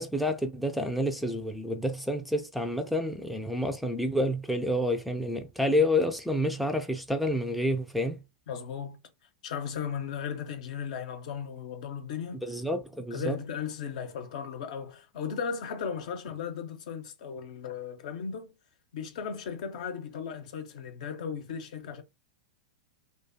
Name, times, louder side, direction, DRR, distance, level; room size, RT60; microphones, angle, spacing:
voice 1, 0.0-8.2 12.4-13.4, left 1 dB, ahead, 0.3 m, -29 dB
voice 2, 8.5-9.0 9.4-12.4 13.1-18.5 18.9-22.0, left 7 dB, 65° left, 0.7 m, -36 dB
2.4 x 2.3 x 2.6 m
hypercardioid pair, 110°, 4 cm